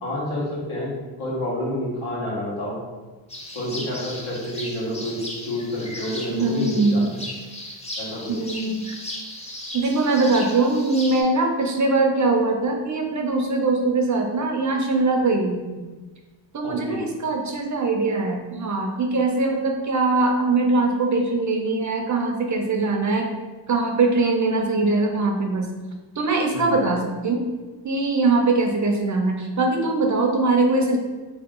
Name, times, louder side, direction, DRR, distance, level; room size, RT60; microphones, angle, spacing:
voice 1, 0.0-0.9 1.2-2.8 3.5-5.2 5.4-7.2 8.0-8.3 16.6-17.0 26.5-26.7, left 1 dB, 80° left, -6 dB, 1.4 m, -29 dB
sound 1, 3.3-11.2, left 1 dB, 15° left, 0.5 m, -36 dB
voice 2, 6.3-7.2 8.3-9.0 9.7-15.9 16.5-23.3 23.7-25.8 26.2-27.4 27.8-31.0, right 3 dB, 40° right, 3 dB, 0.4 m, -22 dB
3.0 x 2.9 x 3.6 m, 1.3 s
wide cardioid pair, 125°, 49 cm